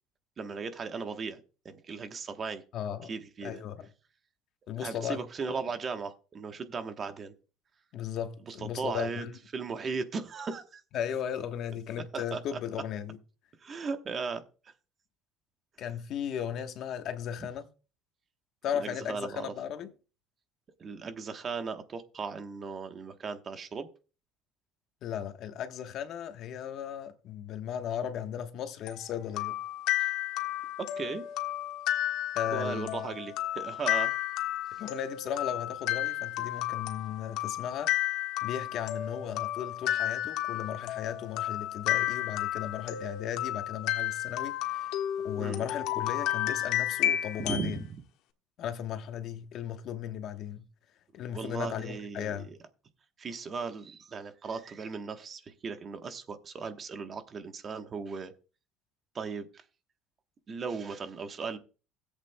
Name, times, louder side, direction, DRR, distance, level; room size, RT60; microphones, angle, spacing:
voice 1, 0.4-2.6 3.1-3.6 4.8-7.3 8.5-9.2 9.5-10.8 12.1-12.6 13.6-14.4 18.7-19.5 20.8-23.9 30.0-30.1 30.8-31.2 32.5-34.1 45.4-45.6 47.4-47.9 51.3-52.5 53.2-58.3 59.1-59.6 60.5-61.6, right 5 dB, 30° right, 1.0 m, -37 dB
voice 2, 2.7-3.1 3.4-3.9 4.7-5.5 7.9-9.3 10.9-13.2 15.8-17.7 18.6-19.9 25.0-29.6 32.3-33.1 34.8-45.0 45.2-47.8 48.6-50.6 51.1-52.5, left 9 dB, 50° left, 1.1 m, -36 dB
sound 1, 28.9-47.7, left 13 dB, 70° left, 1.3 m, -32 dB
17.0 x 8.2 x 2.2 m
cardioid pair, 140°, 0 cm